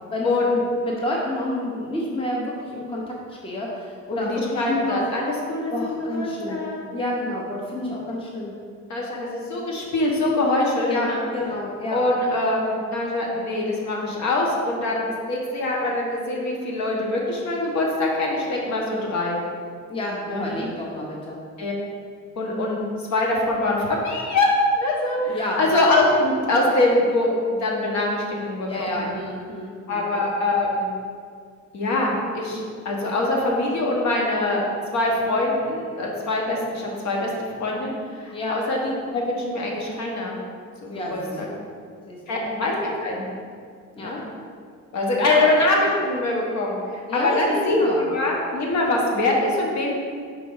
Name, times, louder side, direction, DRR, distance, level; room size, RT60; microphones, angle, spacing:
voice 1, 0.1-5.0 5.7-6.6 6.9-8.5 10.9-11.1 11.3-12.0 19.9-21.4 25.3-25.6 28.7-30.0 38.3-38.6 40.9-41.6 42.1-42.4 44.0-44.1 45.2-45.5 47.1-48.0, left 1 dB, 20° left, -3 dB, 0.7 m, -29 dB
voice 2, 4.1-6.8 8.9-11.2 11.9-19.4 20.3-20.5 21.6-21.7 22.4-24.5 24.7-29.0 29.9-30.9 31.7-34.6 34.9-37.3 37.6-40.4 40.8-41.5 42.3-43.3 44.0-44.2 44.9-50.0, left 2 dB, 65° left, -2 dB, 1.2 m, -23 dB
4.7 x 4.1 x 5.4 m, 2.1 s
cardioid pair, 165°, 30 cm